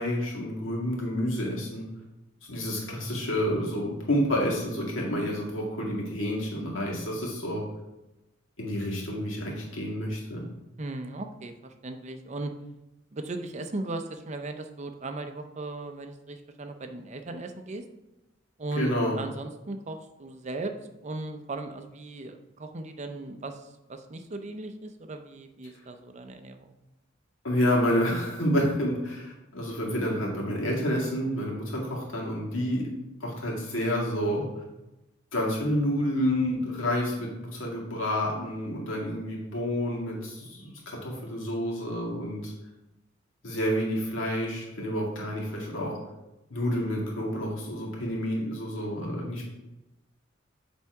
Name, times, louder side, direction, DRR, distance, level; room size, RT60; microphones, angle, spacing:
voice 1, 0.0-1.9 2.5-7.6 8.6-10.4 18.8-19.2 27.4-32.9 33.2-34.5 35.3-42.5 43.4-45.9 46.5-49.4, equal, 85° left, -3 dB, 2.0 m, -29 dB
voice 2, 10.8-12.5 13.1-17.8 18.6-20.7 21.0-26.7, right 2 dB, 35° right, 7 dB, 0.6 m, -37 dB
7.2 x 3.5 x 4.7 m, 0.97 s
head